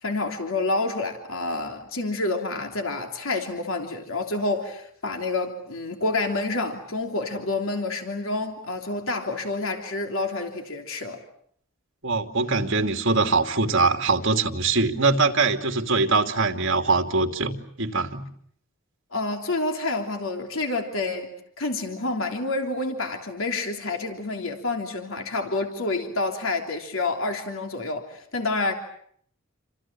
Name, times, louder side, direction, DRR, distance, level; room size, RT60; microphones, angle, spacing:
voice 1, 0.0-11.2 19.1-21.3 21.6-28.7, left 2 dB, 75° left, 3.3 m, -28 dB
voice 2, 12.0-18.3, right 3 dB, 65° right, 2.7 m, -23 dB
29.0 x 26.5 x 7.5 m
head